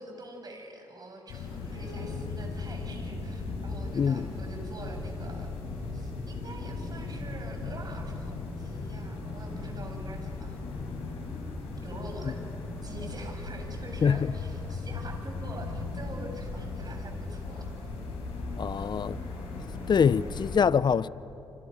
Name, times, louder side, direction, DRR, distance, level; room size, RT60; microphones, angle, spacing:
voice 1, 0.0-10.7 11.8-12.4 12.8-17.9 18.8-18.9 19.2-19.3, right 2 dB, 45° right, 7.1 m, -45 dB
sound 1, 1.3-20.6, left 3 dB, 85° left, 7.4 m, -37 dB
voice 2, 3.9-4.3 14.0-14.3 18.6-19.2 19.9-21.1, left 6 dB, 50° left, 0.7 m, -24 dB
29.5 x 26.0 x 6.6 m
supercardioid pair, 50°, 10 cm